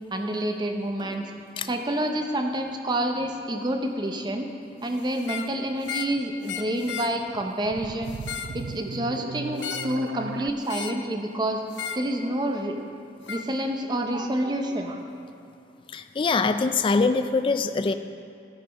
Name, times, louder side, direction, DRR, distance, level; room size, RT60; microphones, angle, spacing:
voice 1, 0.1-1.3 1.6-4.5 4.8-8.1 8.5-11.6 11.9-12.8 13.3-15.0, right 1 dB, 25° right, 4 dB, 0.8 m, -28 dB
sound 1, 5.2-5.5 5.8-6.2 6.4-7.1 8.1-8.6 9.6-10.0 10.7-11.0 11.7-12.1 13.3-13.5, left 7 dB, 85° left, 0.6 m, -34 dB
sound 2, 7.2-10.5, right 5 dB, 75° right, 0.4 m, -37 dB
voice 2, 15.9-17.9, left 4 dB, 30° left, 10 dB, 0.3 m, -23 dB
14.0 x 5.4 x 5.3 m, 2.7 s
head